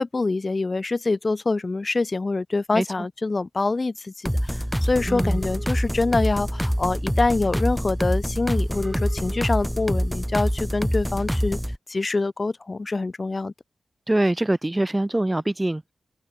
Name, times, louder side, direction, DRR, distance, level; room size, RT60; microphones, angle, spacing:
voice 1, 0.0-11.6 11.9-13.5, left 3 dB, 35° left, 2.0 m, -25 dB
sound 1, 4.2-11.8, equal, ahead, 3.9 m, -25 dB
voice 2, 5.1-5.4 14.1-15.8, right 1 dB, 15° right, 0.9 m, -23 dB
wide cardioid pair, 85°, 0 cm